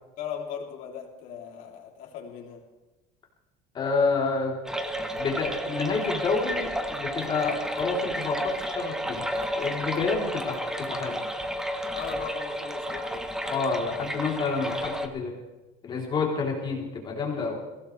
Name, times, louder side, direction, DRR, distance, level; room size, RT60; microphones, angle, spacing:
voice 1, 0.2-2.6 11.9-13.3, left 7 dB, 50° left, 0 dB, 3.2 m, -38 dB
voice 2, 3.7-4.6 5.1-9.3 9.6-11.2 13.5-15.4 15.8-17.6, left 4 dB, 25° left, -1 dB, 3.6 m, -29 dB
sound 1, 4.6-15.1, equal, 5° right, 0.9 m, -32 dB
22.0 x 16.5 x 3.4 m, 1.1 s
cardioid pair, 170°, 17 cm